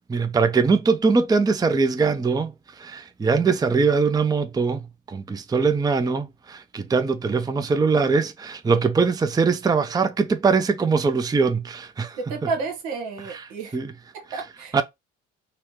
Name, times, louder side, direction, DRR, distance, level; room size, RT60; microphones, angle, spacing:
voice 1, 0.1-4.8 5.1-12.2 13.7-13.9 14.3-14.4 14.7-14.8, right 4 dB, 10° right, 0.5 m, -22 dB
voice 2, 12.2-13.8 14.1-14.8, right 4 dB, 80° right, 1.2 m, -31 dB
4.0 x 2.2 x 2.9 m
hypercardioid pair, 60°, 33 cm